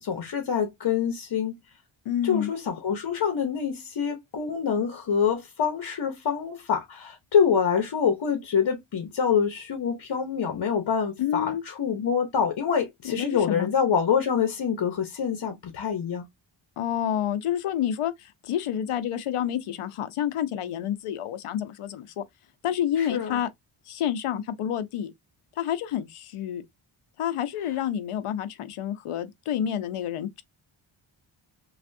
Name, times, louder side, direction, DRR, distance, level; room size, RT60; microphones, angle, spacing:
voice 1, 0.0-1.6 2.2-16.3 23.0-23.4, left 7 dB, 55° left, 1.0 m, -26 dB
voice 2, 2.1-2.5 11.2-11.6 13.0-13.7 16.8-22.2 22.6-23.5 23.9-25.1 25.6-26.6 27.2-30.4, left 10 dB, 85° left, 0.7 m, -29 dB
3.4 x 2.4 x 2.6 m
wide cardioid pair, 125°, 50 cm